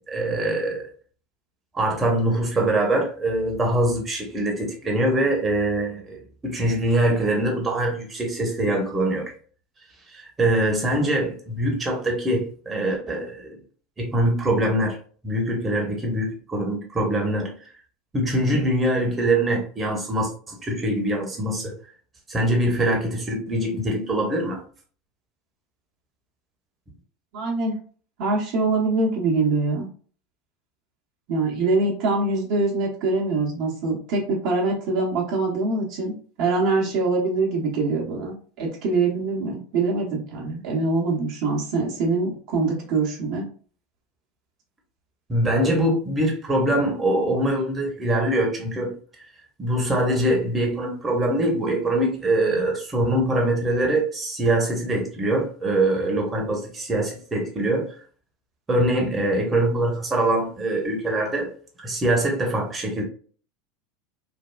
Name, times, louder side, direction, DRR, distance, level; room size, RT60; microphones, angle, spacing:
voice 1, 0.1-0.8 1.7-9.3 10.1-13.6 14.0-15.0 15.2-17.5 18.1-21.7 22.3-24.6 45.3-48.9 49.6-57.9 58.7-61.5 61.8-63.0, right 1 dB, 20° right, 1.0 m, -23 dB
voice 2, 27.3-27.8 28.2-29.9 31.3-43.5, right 3 dB, 55° right, 0.9 m, -24 dB
3.3 x 2.2 x 2.3 m
hypercardioid pair, 85°, 0 cm